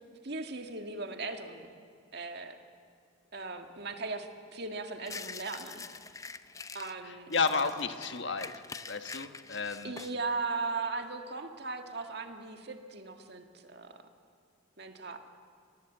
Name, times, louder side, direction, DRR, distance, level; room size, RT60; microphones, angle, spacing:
voice 1, 0.2-1.7 2.1-2.6 3.3-5.9 6.7-7.3 9.8-14.0 14.8-15.2, right 3 dB, 55° right, 5 dB, 2.0 m, -38 dB
sound 1, 5.0-7.0 7.3-10.2, left 4 dB, 15° left, 0.6 m, -45 dB
voice 2, 7.0-8.5 8.9-9.9, left 4 dB, 65° left, 8 dB, 1.4 m, -32 dB
28.0 x 19.5 x 8.0 m, 2.2 s
head